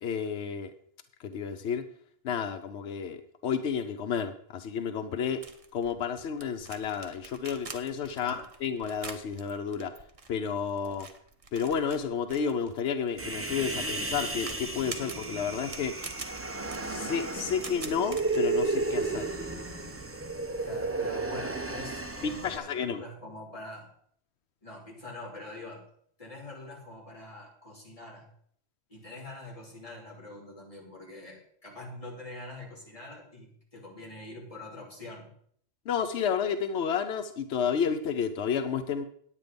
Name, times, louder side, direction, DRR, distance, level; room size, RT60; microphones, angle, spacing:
voice 1, 0.0-0.7 1.2-1.8 2.2-5.4 5.7-9.9 10.3-11.1 11.5-15.9 16.8-19.2 22.2-23.0 35.9-39.1, left 7 dB, 90° left, 9 dB, 1.0 m, -31 dB
sound 1, 5.4-18.4, right 3 dB, 35° right, 1.0 m, -46 dB
Human voice, 13.2-22.6, right 3 dB, 15° right, 0.7 m, -33 dB
voice 2, 20.6-23.9 24.6-25.8 26.2-28.3 28.9-35.3, left 2 dB, 35° left, -3 dB, 3.0 m, -44 dB
9.8 x 9.2 x 5.2 m, 0.63 s
omnidirectional pair, 1.1 m